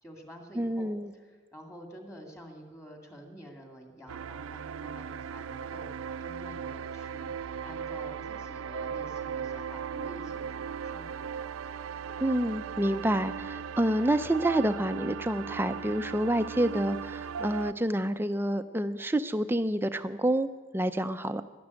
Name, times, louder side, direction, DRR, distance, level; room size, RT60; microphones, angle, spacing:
voice 1, 0.0-11.5, equal, 15° left, 3 dB, 2.1 m, -49 dB
voice 2, 0.6-1.1 12.2-21.4, right 1 dB, 10° right, 10 dB, 0.5 m, -28 dB
sound 1, 4.1-17.7, right 7 dB, 85° right, 0.4 m, -38 dB
12.0 x 11.5 x 9.5 m, 1.5 s
head